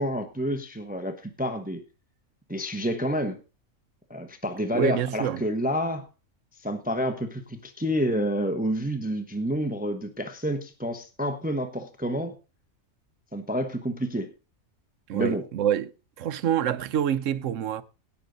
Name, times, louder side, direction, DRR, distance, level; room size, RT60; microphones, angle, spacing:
voice 1, 0.0-1.8 2.5-3.4 4.1-6.1 6.6-12.3 13.3-14.3 15.1-15.4, equal, 5° right, 0.9 m, -29 dB
voice 2, 4.7-5.4 15.1-15.9 16.2-17.8, right 10 dB, 65° right, 1.0 m, -26 dB
17.0 x 6.8 x 3.9 m
omnidirectional pair, 1.5 m